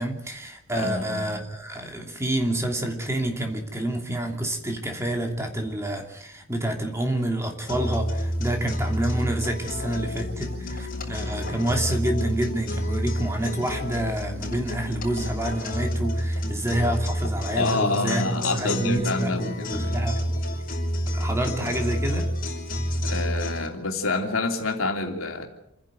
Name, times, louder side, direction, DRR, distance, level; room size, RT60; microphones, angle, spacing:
voice 1, 0.0-20.2 21.1-22.3, right 1 dB, 15° right, 3 dB, 2.8 m, -28 dB
voice 2, 0.7-1.4 17.5-20.1 23.0-25.5, left 3 dB, 80° left, 3 dB, 3.1 m, -27 dB
sound 1, 7.7-23.7, equal, 45° left, 5.5 m, -29 dB
27.5 x 10.5 x 9.1 m, 0.81 s
head